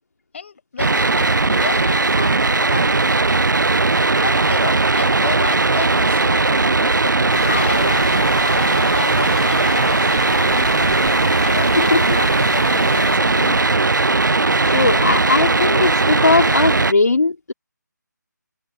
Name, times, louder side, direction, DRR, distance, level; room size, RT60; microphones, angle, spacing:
voice 1, 0.3-3.4 4.0-11.1 11.4-13.6, left 6 dB, 40° left, 4.7 m, -32 dB
sound 1, 0.8-16.9, right 3 dB, 75° right, 0.5 m, -17 dB
sound 2, 7.3-13.2, left 10 dB, 25° left, 1.3 m, -32 dB
voice 2, 14.7-17.5, left 3 dB, 60° left, 2.6 m, -18 dB
figure-of-eight pair, 155°, 10 cm